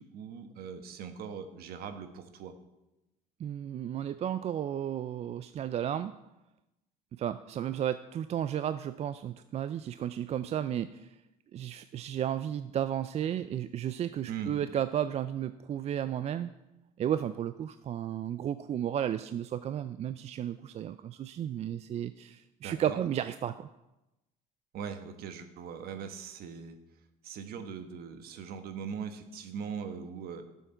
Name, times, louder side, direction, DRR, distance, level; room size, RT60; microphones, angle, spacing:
voice 1, 0.0-2.5 14.3-14.6 22.6-23.0 24.7-26.8 27.2-30.4, right 7 dB, 60° right, 8 dB, 1.3 m, -40 dB
voice 2, 3.4-6.1 7.1-11.1 11.5-16.5 17.0-23.7, right 10 dB, 40° right, 12 dB, 0.4 m, -33 dB
12.0 x 7.1 x 4.5 m, 0.96 s
supercardioid pair, 90°, 18 cm